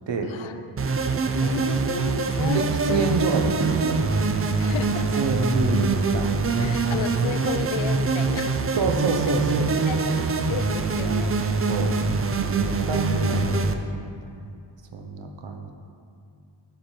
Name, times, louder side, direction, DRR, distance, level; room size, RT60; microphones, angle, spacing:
voice 1, 0.2-0.8 1.4-3.2 4.6-5.3 6.6-8.5 9.6-11.4 12.7-13.5, left 7 dB, 85° left, 9 dB, 0.6 m, -33 dB
sound 1, 0.8-13.7, right 4 dB, 30° right, 0.4 m, -24 dB
voice 2, 2.5-4.1 5.2-6.3 6.8-7.0 8.8-10.2 10.9-11.2 11.7-12.0 12.4-14.2 14.9-15.7, right 3 dB, 70° right, 4 dB, 0.9 m, -28 dB
9.7 x 5.2 x 4.4 m, 2.4 s
wide cardioid pair, 140°, 46 cm